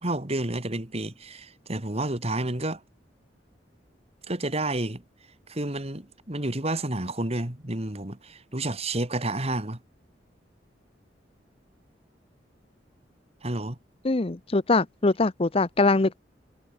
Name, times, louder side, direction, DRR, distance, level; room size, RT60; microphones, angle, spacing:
voice 1, 0.0-2.8 4.3-5.0 5.5-9.8 13.4-13.8, right 2 dB, 35° right, 3.1 m, -30 dB
voice 2, 14.0-16.2, left 3 dB, 35° left, 0.7 m, -23 dB
head